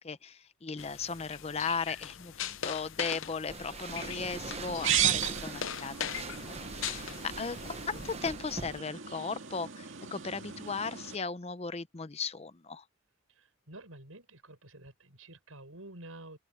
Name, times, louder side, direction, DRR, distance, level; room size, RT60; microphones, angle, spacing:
voice 1, 0.0-6.1 6.6-12.8, left 5 dB, 30° left, 0.6 m, -37 dB
sound 1, 0.8-8.2, left 9 dB, 65° left, 0.7 m, -41 dB
sound 2, 3.5-8.8, right 3 dB, 30° right, 1.0 m, -42 dB
sound 3, 3.9-11.2, right 10 dB, 65° right, 2.2 m, -36 dB
voice 2, 13.3-16.4, right 2 dB, 80° right, 6.4 m, -50 dB
open air
head